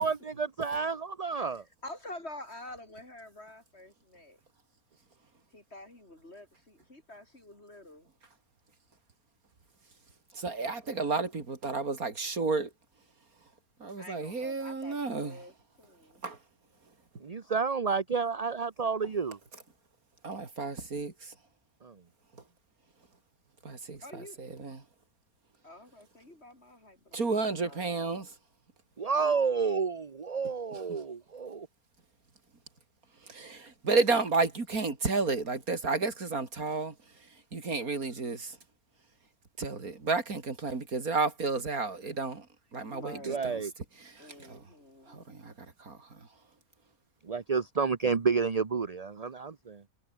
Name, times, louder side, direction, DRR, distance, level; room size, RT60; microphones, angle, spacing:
voice 1, 0.0-1.6 17.2-19.4 21.8-22.0 29.0-31.7 43.2-43.7 47.2-49.8, right 5 dB, 30° right, 0.9 m, -30 dB
voice 2, 1.8-4.4 5.5-8.1 14.0-16.2 24.0-24.4 25.6-28.1 42.9-43.5 44.2-45.3, left 1 dB, 45° left, 6.2 m, -48 dB
voice 3, 10.3-12.7 13.8-15.4 16.2-16.4 20.2-21.4 22.3-22.4 23.6-24.9 27.1-28.3 30.7-31.0 33.2-38.6 39.6-43.6 44.0-44.6 45.1-46.3, right 3 dB, 75° right, 3.6 m, -32 dB
omnidirectional pair, 1.5 m